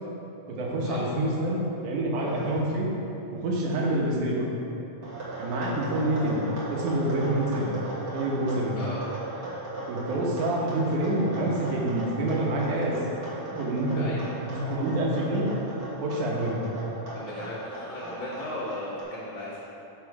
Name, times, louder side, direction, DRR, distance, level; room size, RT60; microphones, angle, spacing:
voice 1, 0.5-2.9 3.3-4.4 5.4-6.4 6.7-7.8 8.1-8.8 9.9-13.0 13.5-14.1 14.4-15.5 16.0-16.6, right 1 dB, 75° right, -3 dB, 2.5 m, -27 dB
sound 1, 2.3-2.6 5.0-19.0, right 2 dB, 45° right, 1.7 m, -37 dB
voice 2, 13.9-14.3 17.1-19.6, left 1 dB, 55° left, -14 dB, 2.5 m, -37 dB
6.8 x 6.0 x 4.7 m, 2.9 s
omnidirectional pair, 3.7 m